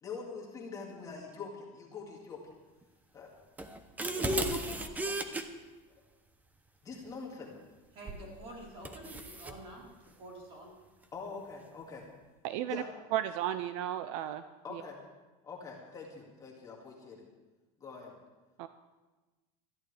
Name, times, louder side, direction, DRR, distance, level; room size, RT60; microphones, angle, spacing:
voice 1, 0.0-2.5 3.1-3.3 4.1-5.2 6.8-7.6 11.1-12.0 12.7-12.9 14.6-15.0 15.4-17.2 17.8-18.1, left 5 dB, 20° left, 2.1 m, -44 dB
sound 1, 3.6-5.4 8.1-8.3 8.8-9.6, right 1 dB, 10° right, 0.6 m, -34 dB
voice 2, 7.9-9.8 10.2-10.7, right 1 dB, 35° right, 4.1 m, -48 dB
voice 3, 12.4-12.8 13.1-14.4 14.7-14.8 18.6-18.7, right 12 dB, 65° right, 0.6 m, -33 dB
20.5 x 13.5 x 3.4 m
cardioid pair, 175°, 18 cm